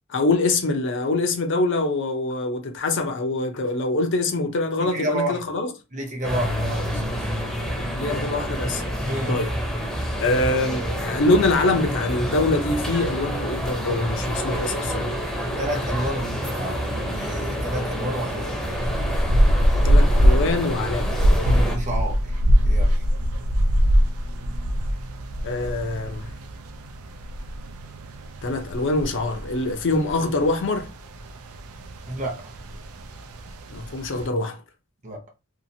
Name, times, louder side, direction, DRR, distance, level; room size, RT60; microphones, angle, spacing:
voice 1, 0.1-5.7 8.0-8.8 9.3-9.5 10.2-15.2 19.8-21.2 25.4-26.3 28.4-30.9 33.7-34.6, left 2 dB, 60° left, 0.6 m, -24 dB
voice 2, 4.8-5.5 5.9-7.3 9.1-9.4 10.2-10.3 15.6-18.6 21.4-22.4 22.7-23.0 32.1-32.5 35.0-35.2, right 1 dB, 35° right, 0.8 m, -30 dB
sound 1, 6.2-21.8, equal, ahead, 0.6 m, -28 dB
sound 2, 18.6-34.3, equal, 80° right, 0.4 m, -23 dB
2.7 x 2.5 x 2.7 m
head